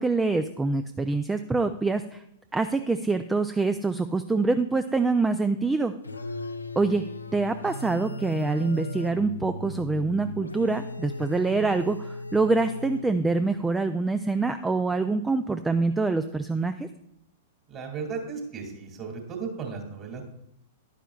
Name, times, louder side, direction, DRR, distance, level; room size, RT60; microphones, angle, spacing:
voice 1, 0.0-2.2 2.5-5.9 6.8-7.1 7.3-16.9, right 3 dB, 10° right, 10 dB, 0.4 m, -25 dB
sound 1, 6.0-13.5, left 2 dB, 85° left, 0.6 m, -37 dB
voice 2, 17.7-20.2, right 5 dB, 30° right, 2 dB, 2.5 m, -35 dB
11.0 x 10.0 x 2.4 m, 0.78 s
figure-of-eight pair, 100°, 0 cm